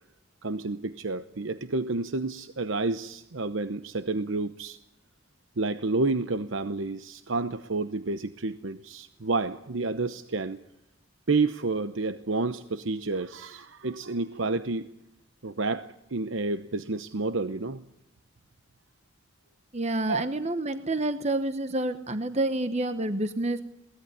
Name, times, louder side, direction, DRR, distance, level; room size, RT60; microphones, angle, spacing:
voice 1, 0.4-4.8 5.6-10.6 11.3-14.9 15.4-17.8 20.1-20.2, right 3 dB, 80° right, 11 dB, 0.9 m, -30 dB
voice 2, 19.7-23.6, right 2 dB, 35° right, 10 dB, 1.0 m, -28 dB
22.5 x 19.0 x 9.7 m, 0.84 s
head